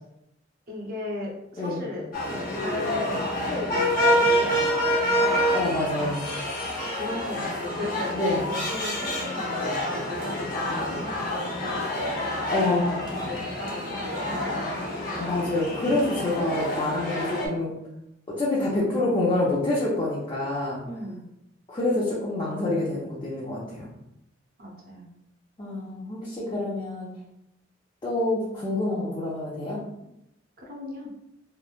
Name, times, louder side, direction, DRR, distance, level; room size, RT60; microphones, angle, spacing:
voice 1, 0.7-2.1 2.5-5.4 6.9-8.1 8.5-12.1 12.6-14.8 20.8-21.2 24.6-25.1 30.6-31.1, left 1 dB, 50° right, -2 dB, 0.7 m, -36 dB
sound 1, 2.1-17.5, equal, 50° left, 0.8 m, -27 dB
voice 2, 5.5-6.4 8.1-8.4 12.5-13.0 15.2-17.7 18.3-20.8 21.7-23.9 25.6-27.1 28.0-29.8, left 2 dB, 25° left, -7 dB, 0.5 m, -27 dB
3.1 x 2.1 x 2.4 m, 0.83 s
head